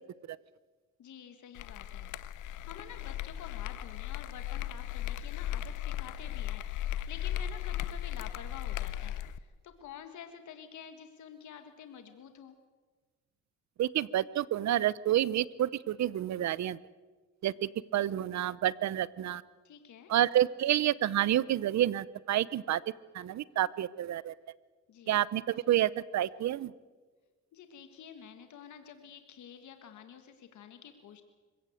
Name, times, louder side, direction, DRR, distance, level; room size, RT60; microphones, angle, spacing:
voice 1, 1.0-2.1 2.6-9.1 9.6-12.5 19.7-20.1 24.9-25.1 27.5-31.2, left 8 dB, 70° left, 7 dB, 1.7 m, -49 dB
sound 1, 1.6-9.4, left 12 dB, 90° left, 0.9 m, -37 dB
voice 2, 13.8-16.8 17.4-19.4 20.1-22.8 23.1-24.3 25.1-26.7, right 12 dB, 65° right, 20 dB, 0.8 m, -29 dB
26.0 x 16.5 x 7.9 m, 1.4 s
cardioid pair, 90°, 30 cm